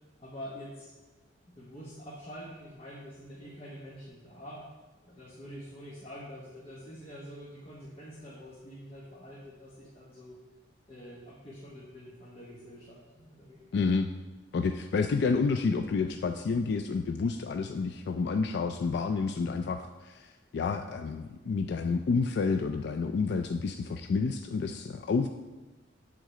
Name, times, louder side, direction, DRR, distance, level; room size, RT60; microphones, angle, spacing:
voice 1, 0.2-0.9 1.5-4.6 5.0-10.4 10.9-13.8, equal, 30° left, -6 dB, 1.2 m, -46 dB
voice 2, 13.7-14.1 14.5-25.3, left 4 dB, 60° left, 6 dB, 0.3 m, -29 dB
7.9 x 3.8 x 6.6 m, 1.2 s
head